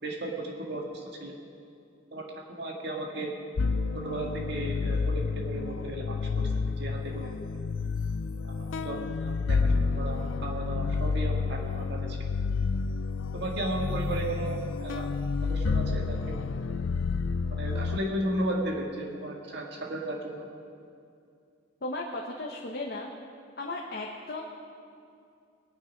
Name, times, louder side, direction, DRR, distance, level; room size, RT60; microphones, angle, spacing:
voice 1, 0.0-1.3 2.1-2.2 2.5-3.3 4.0-7.3 8.4-12.2 13.3-15.1 15.5-16.4 16.7-16.8 17.5-20.5, right 1 dB, 55° right, 0 dB, 1.8 m, -35 dB
sound 1, 3.6-18.0, left 4 dB, 80° left, 0.5 m, -30 dB
voice 2, 21.8-23.1 23.6-24.4, left 2 dB, 50° left, -2 dB, 1.1 m, -35 dB
21.0 x 9.4 x 5.3 m, 2.5 s
head